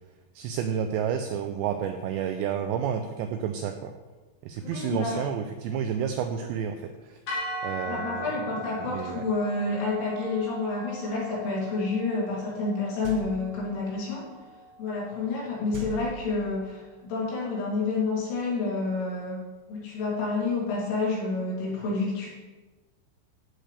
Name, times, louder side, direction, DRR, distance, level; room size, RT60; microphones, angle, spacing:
voice 1, 0.4-3.9 4.4-7.2 7.6-8.3 8.8-9.2, right 8 dB, 90° right, 7 dB, 2.5 m, -30 dB
voice 2, 4.6-5.2 7.8-14.2 14.8-19.4 19.7-22.3, left 3 dB, 75° left, -6 dB, 5.4 m, -29 dB
sound 1, 7.3-15.5, equal, 50° left, 2.6 m, -40 dB
sound 2, 13.0-13.7 15.7-16.7, right 2 dB, 70° right, 2.9 m, -39 dB
14.0 x 7.7 x 3.3 m, 1.2 s
omnidirectional pair, 5.6 m